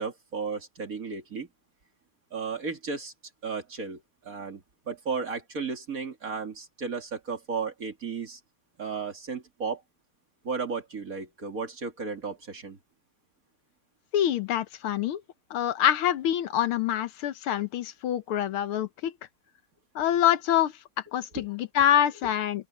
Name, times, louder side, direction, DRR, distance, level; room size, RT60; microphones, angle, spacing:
voice 1, 0.0-1.5 2.3-3.1 3.4-8.4 8.8-9.8 10.4-12.8 21.3-21.4 22.2-22.3, right 5 dB, 40° right, 2.6 m, -34 dB
voice 2, 14.1-15.2 15.5-19.1 20.0-20.7 21.1-22.7, left 11 dB, 85° left, 1.9 m, -25 dB
open air
omnidirectional pair, 2.3 m